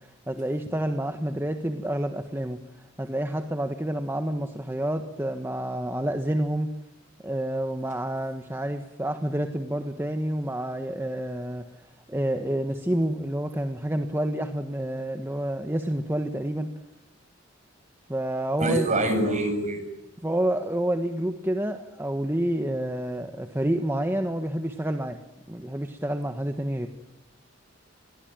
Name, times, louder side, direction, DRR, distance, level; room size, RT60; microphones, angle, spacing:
voice 1, 0.3-2.6 3.0-6.7 7.2-11.6 12.1-16.7 18.1-18.9 20.2-25.2 25.5-26.9, right 1 dB, 10° right, 6 dB, 1.4 m, -28 dB
voice 2, 18.6-19.8, right 1 dB, 35° right, 7 dB, 7.1 m, -25 dB
29.0 x 22.5 x 9.1 m, 0.87 s
head